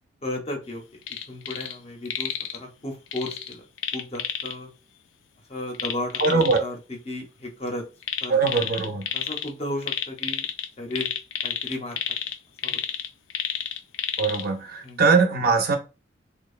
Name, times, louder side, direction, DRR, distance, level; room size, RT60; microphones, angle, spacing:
voice 1, 0.2-0.8 1.3-3.6 3.9-4.7 5.5-6.8 7.1-7.8 8.2-8.4 9.1-10.5 10.8-11.1 11.4-12.0 12.6-12.8 14.8-15.0, left 1 dB, 35° left, 0.6 m, -34 dB
sound 1, 1.0-1.8 2.1-2.6 3.1-4.5 5.7-6.6 8.0-9.5 9.8-14.5 14.9-15.0, left 9 dB, 85° left, 0.3 m, -30 dB
voice 2, 6.2-6.6 8.3-9.0 14.2-15.8, right 4 dB, 50° right, 0.5 m, -21 dB
2.7 x 2.0 x 2.3 m
head